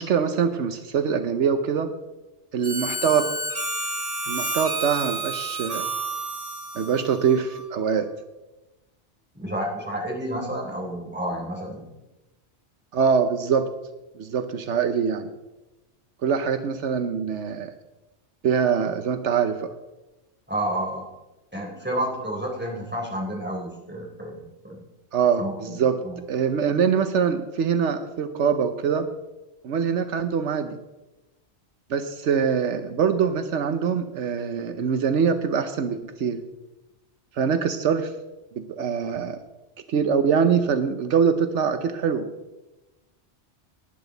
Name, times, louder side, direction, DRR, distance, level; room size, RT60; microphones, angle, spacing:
voice 1, 0.0-1.9 2.5-3.3 4.2-5.9 6.7-8.1 12.9-13.7 14.2-15.3 16.2-17.7 18.4-19.7 25.1-26.0 26.3-29.1 29.6-30.8 31.9-36.4 37.3-38.1 38.5-39.4 39.9-42.3, right 6 dB, 80° right, 9 dB, 1.1 m, -23 dB
Harmonica, 2.6-7.8, right 2 dB, 30° right, 2.7 m, -30 dB
voice 2, 9.3-11.9 20.5-21.1 21.5-24.8 25.4-25.8 26.0-26.2, right 1 dB, 10° right, -2 dB, 3.6 m, -30 dB
18.5 x 10.0 x 4.0 m, 1.0 s
omnidirectional pair, 1.2 m